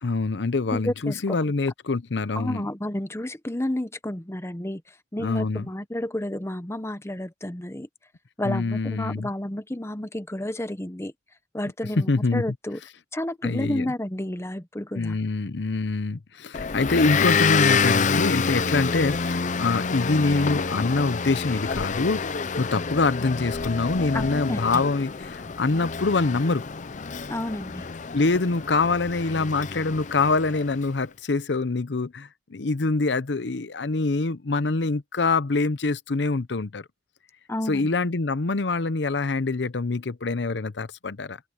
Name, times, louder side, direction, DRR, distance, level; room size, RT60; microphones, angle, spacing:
voice 1, 0.0-2.7 5.2-5.7 8.4-9.3 12.1-12.4 13.4-13.9 14.9-26.6 28.1-36.8 37.7-41.4, left 3 dB, 80° left, 0.8 m, -25 dB
voice 2, 0.7-1.4 2.4-7.9 8.4-11.1 11.5-12.8 13.1-15.2 24.1-24.8 27.3-27.9 37.5-37.9, left 1 dB, 15° left, 0.9 m, -31 dB
Motor vehicle (road) / Engine, 16.5-30.8, left 5 dB, 45° left, 0.6 m, -27 dB
head